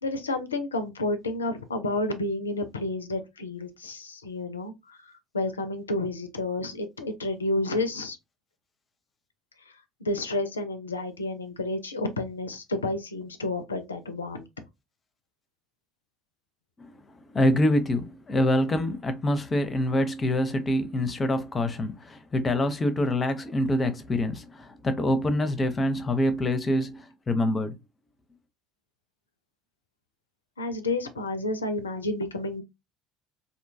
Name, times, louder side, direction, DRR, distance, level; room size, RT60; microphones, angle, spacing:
voice 1, 0.0-8.2 10.0-14.5 30.6-32.6, left 2 dB, 80° left, 0.4 m, -30 dB
voice 2, 17.3-27.8, left 1 dB, 25° left, 0.5 m, -25 dB
2.6 x 2.2 x 2.6 m
figure-of-eight pair, 60°, 0 cm